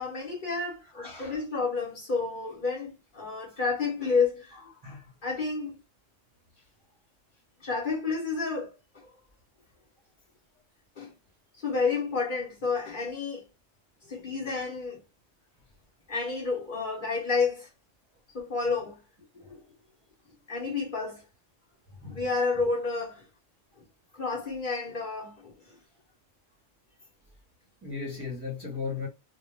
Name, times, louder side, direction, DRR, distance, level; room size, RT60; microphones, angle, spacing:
voice 1, 0.0-4.6 5.2-5.8 7.6-9.1 11.0-11.1 11.6-13.4 14.1-15.0 16.1-17.7 18.3-19.0 20.5-21.2 22.1-23.2 24.1-25.7, left 4 dB, 45° left, 0.9 m, -30 dB
voice 2, 0.9-1.4 4.8-5.1 19.3-19.7 22.0-22.3 27.8-29.1, left 5 dB, 25° right, 0.8 m, -37 dB
2.3 x 2.2 x 3.1 m
omnidirectional pair, 1.3 m